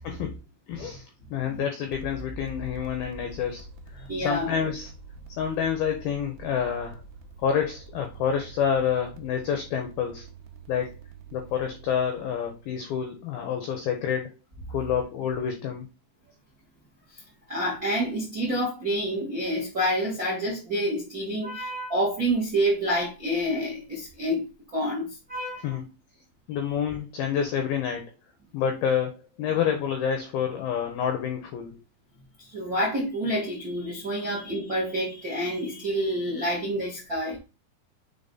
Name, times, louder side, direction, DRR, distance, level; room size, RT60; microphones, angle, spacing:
voice 1, 0.0-0.4 0.7-3.6 3.9-4.9 5.4-7.0 7.4-10.3 10.7-10.9 11.3-14.4 14.7-15.9 25.6-25.8 26.5-28.1 28.5-29.1 29.4-31.8 34.2-34.3, left 8 dB, 85° left, 2.1 m, -28 dB
sound 1, 1.9-13.6, right 2 dB, 80° right, 2.8 m, -45 dB
voice 2, 4.1-4.5 17.5-25.7 32.4-37.4, equal, 55° right, 1.0 m, -28 dB
6.9 x 3.6 x 3.9 m
omnidirectional pair, 5.4 m